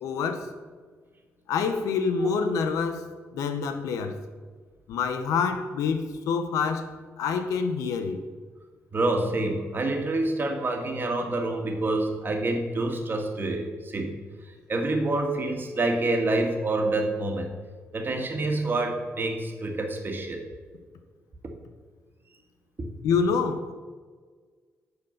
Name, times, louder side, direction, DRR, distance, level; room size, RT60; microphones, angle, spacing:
voice 1, 0.0-0.5 1.5-3.0 3.3-4.2 4.9-6.9 7.2-8.2 23.0-23.7, left 5 dB, 85° left, 8 dB, 0.8 m, -26 dB
voice 2, 8.9-14.2 14.7-17.5 17.9-20.4 22.8-22.9, right 2 dB, 40° right, 3 dB, 1.7 m, -27 dB
9.4 x 4.4 x 6.6 m, 1.5 s
supercardioid pair, 65°, 6 cm